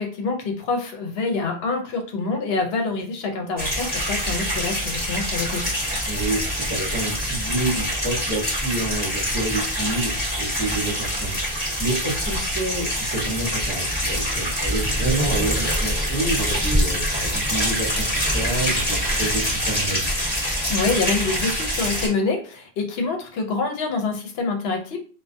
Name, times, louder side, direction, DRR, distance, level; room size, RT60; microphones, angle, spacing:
voice 1, 0.0-5.7 20.7-25.0, left 4 dB, 70° left, 3 dB, 0.8 m, -26 dB
sound 1, 3.6-22.1, equal, 10° left, 1.1 m, -25 dB
voice 2, 6.0-20.1, right 2 dB, 30° left, -8 dB, 0.8 m, -28 dB
2.3 x 2.2 x 2.5 m, 0.39 s
omnidirectional pair, 1.1 m